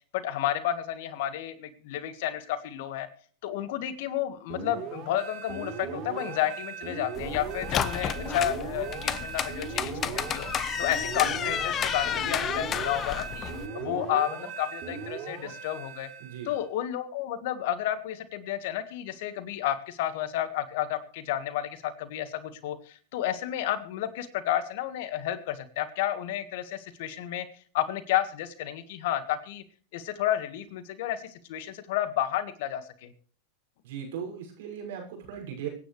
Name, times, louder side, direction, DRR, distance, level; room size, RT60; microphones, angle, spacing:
voice 1, 0.1-3.1 3.4-10.5 10.8-16.1 16.4-27.5 27.7-29.6 29.9-33.1, left 12 dB, 60° left, 12 dB, 1.7 m, -31 dB
sound 1, 4.5-16.6, right 6 dB, 45° right, 3.6 m, -38 dB
sound 2, 7.2-13.7, left 8 dB, 30° left, 1.1 m, -31 dB
voice 2, 16.2-16.5 33.8-35.7, right 8 dB, 65° right, 1 dB, 6.2 m, -38 dB
24.5 x 10.0 x 3.3 m, 0.43 s
hypercardioid pair, 95°, 0 cm